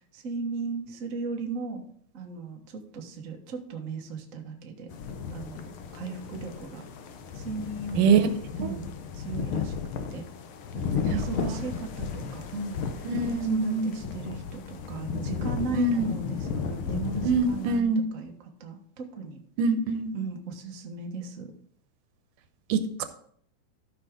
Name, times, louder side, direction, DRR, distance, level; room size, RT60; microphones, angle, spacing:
voice 1, 0.1-1.8 2.1-4.9 5.3-5.6 5.9-6.9 7.3-8.1 8.6-9.7 10.1-10.2 10.7-13.1 13.4-18.3 18.6-19.4 20.1-21.5, right 4 dB, 55° right, 2 dB, 0.8 m, -37 dB
sound 1, 4.9-17.8, left 6 dB, 85° left, 1.2 m, -34 dB
voice 2, 8.0-8.3 11.1-11.6 13.1-13.9 15.7-16.1 17.2-18.0 19.6-20.2 22.7-23.1, right 4 dB, 85° right, 9 dB, 2.4 m, -24 dB
13.5 x 5.9 x 3.7 m, 0.64 s
omnidirectional pair, 3.6 m